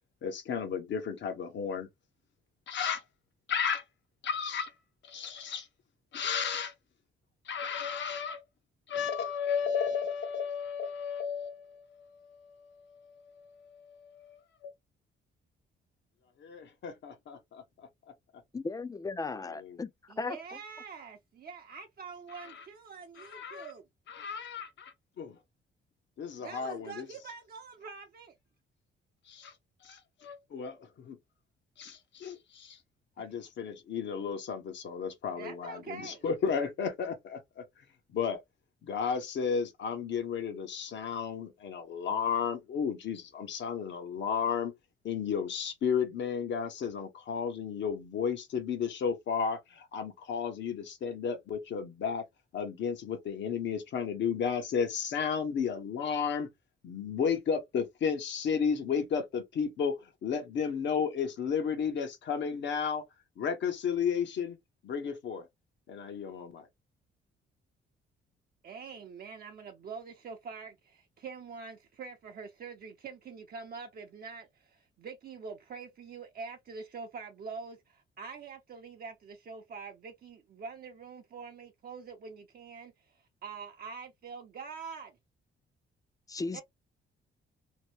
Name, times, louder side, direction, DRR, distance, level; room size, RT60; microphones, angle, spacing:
voice 1, 0.2-1.9 2.7-3.0 3.5-3.8 4.2-4.7 5.0-5.7 6.1-6.7 7.5-8.4 8.9-14.7 16.4-17.6 19.3-19.8 22.3-22.6 23.2-23.7 24.1-25.4 26.2-27.1 29.3-29.5 29.8-31.2 31.8-32.8 33.2-37.6 38.1-38.4 38.8-44.7 45.0-52.2 52.5-56.5 56.8-63.0 63.4-64.6 64.8-65.5 65.9-66.7, left 6 dB, 65° left, 1.0 m, -33 dB
voice 2, 18.5-19.9 20.2-20.4 86.3-86.6, left 3 dB, 20° left, 0.4 m, -35 dB
voice 3, 20.1-23.8 26.4-28.3 33.2-33.3 35.4-36.2 68.6-85.1 86.5-86.6, right 5 dB, 50° right, 0.7 m, -45 dB
2.9 x 2.1 x 3.1 m
cardioid pair, 90°, 20 cm